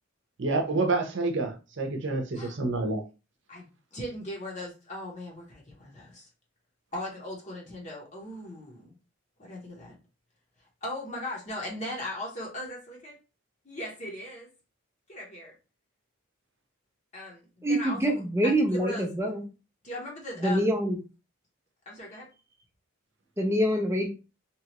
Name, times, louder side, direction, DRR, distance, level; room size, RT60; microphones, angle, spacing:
voice 1, 0.4-3.0, right 3 dB, 55° right, 3 dB, 0.7 m, -28 dB
voice 2, 3.5-6.3 6.9-8.9 9.4-10.0 10.8-13.1 13.6-14.5 15.1-15.5 17.1-19.0 19.8-20.7 21.9-22.3, left 1 dB, 35° left, -2 dB, 0.8 m, -38 dB
voice 3, 17.6-19.4 20.4-21.0 23.4-24.1, equal, 10° right, 3 dB, 0.5 m, -25 dB
2.9 x 2.4 x 2.9 m, 0.31 s
head